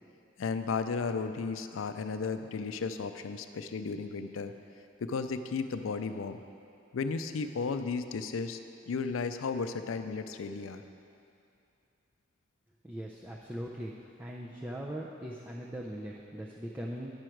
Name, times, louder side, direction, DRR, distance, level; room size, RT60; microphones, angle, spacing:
voice 1, 0.4-4.5 5.0-6.4 6.9-8.6 8.9-10.8, left 4 dB, 90° left, 9 dB, 0.4 m, -34 dB
voice 2, 12.8-13.9 14.2-17.1, equal, 10° right, -3 dB, 0.4 m, -40 dB
9.6 x 6.3 x 4.5 m, 2.6 s
head